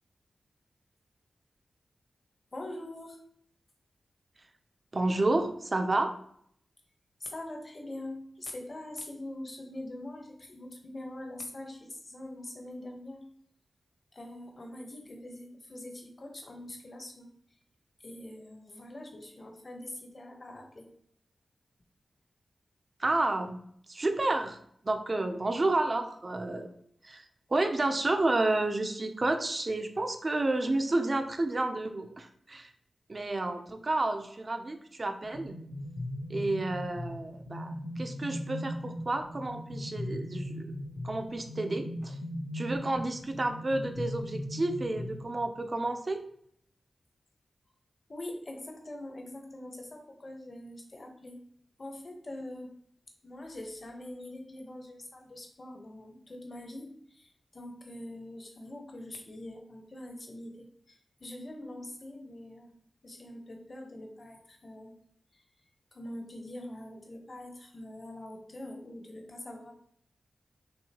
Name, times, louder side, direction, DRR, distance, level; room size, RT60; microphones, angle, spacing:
voice 1, 2.5-3.2 7.2-13.2 14.1-17.3 18.0-20.9 48.1-51.4 51.8-52.7 53.2-62.7 63.0-65.0 65.3-65.4 65.9-69.7, left 1 dB, 40° left, 2 dB, 1.1 m, -43 dB
voice 2, 4.9-6.1 23.0-23.6 23.9-24.6 24.8-26.7 27.0-27.2 27.5-32.7 33.1-35.6 36.3-40.7 41.0-42.2 42.5-46.2, right 2 dB, 40° right, 7 dB, 0.6 m, -30 dB
sound 1, 35.2-45.7, left 1 dB, 70° left, 0.8 m, -39 dB
6.4 x 2.7 x 3.0 m, 0.67 s
wide cardioid pair, 70°, 0 cm